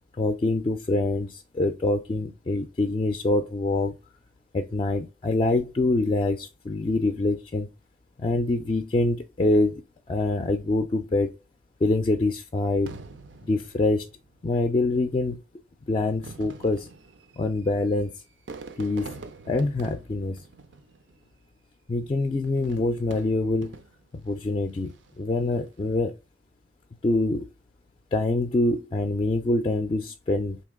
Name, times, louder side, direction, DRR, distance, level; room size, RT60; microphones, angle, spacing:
voice 1, 0.2-3.9 4.5-7.7 8.2-9.8 10.1-11.3 11.8-12.9 13.4-14.1 14.4-15.4 15.9-16.9 17.4-18.1 18.8-19.1 19.5-20.4 21.9-23.7 24.2-26.1 27.0-27.5 28.1-30.6, left 2 dB, 30° left, 0.3 m, -25 dB
Fireworks, 12.9-14.5 15.3-15.4 16.1-21.4 22.4-24.2 24.8-25.3, right 4 dB, 90° right, 0.5 m, -45 dB
3.7 x 2.8 x 3.6 m
head